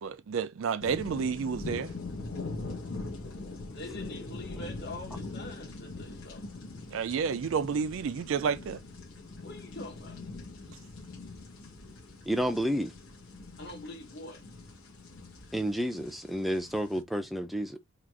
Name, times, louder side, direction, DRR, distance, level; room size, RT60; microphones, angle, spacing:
voice 1, 0.0-1.9 6.9-8.8, right 6 dB, 65° right, 0.4 m, -30 dB
sound 1, 0.8-17.0, left 3 dB, 75° left, 1.3 m, -42 dB
voice 2, 3.7-6.5 9.4-10.2 13.6-14.4, left 2 dB, 50° left, 1.3 m, -44 dB
voice 3, 12.3-12.9 15.5-17.8, equal, ahead, 0.5 m, -30 dB
3.7 x 2.5 x 4.6 m
head